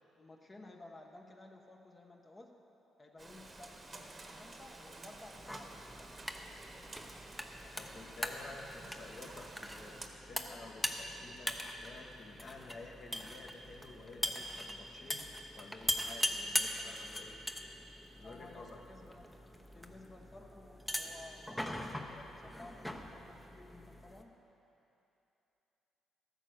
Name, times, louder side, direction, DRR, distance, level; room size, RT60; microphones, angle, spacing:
voice 1, 0.2-2.5 3.0-6.2 18.2-19.4 19.7-24.3, left 2 dB, 25° left, 1 dB, 1.1 m, -55 dB
Rain, 3.2-10.1, right 2 dB, 30° right, 1.2 m, -51 dB
sound 1, 5.4-24.2, equal, 10° left, 0.9 m, -41 dB
voice 2, 7.7-17.4 18.2-18.8, left 3 dB, 55° left, 0 dB, 1.8 m, -51 dB
13.0 x 9.0 x 6.6 m, 2.9 s
cardioid pair, 90°, 0 cm